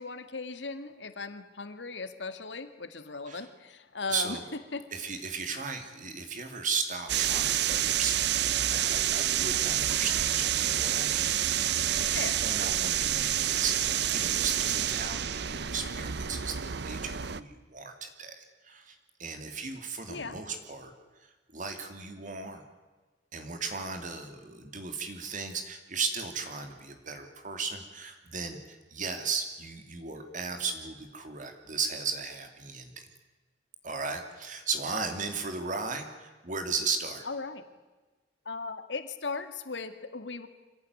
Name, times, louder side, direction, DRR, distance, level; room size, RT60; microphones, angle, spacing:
voice 1, 0.0-4.4 4.7-4.9 12.1-12.4 20.1-20.4 37.3-37.6 38.5-40.5, left 4 dB, 80° left, 10 dB, 2.0 m, -37 dB
voice 2, 4.1-4.4 4.9-20.9 21.2-22.6 23.3-32.9 33.8-37.2, right 4 dB, 45° right, 6 dB, 2.8 m, -36 dB
sound 1, 7.1-17.4, right 10 dB, 65° right, 0.8 m, -28 dB
25.5 x 17.5 x 9.7 m, 1.3 s
head